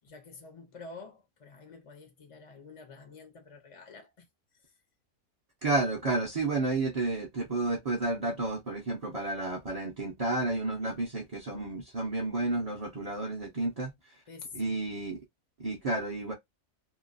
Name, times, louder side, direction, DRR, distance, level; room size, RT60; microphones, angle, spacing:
voice 1, 0.0-4.3 4.6-4.7 14.3-14.8, left 4 dB, 45° left, 0.4 m, -48 dB
voice 2, 5.6-14.2 14.5-15.2 15.6-16.3, right 2 dB, 40° right, 0.5 m, -31 dB
2.9 x 2.3 x 2.4 m
omnidirectional pair, 1.4 m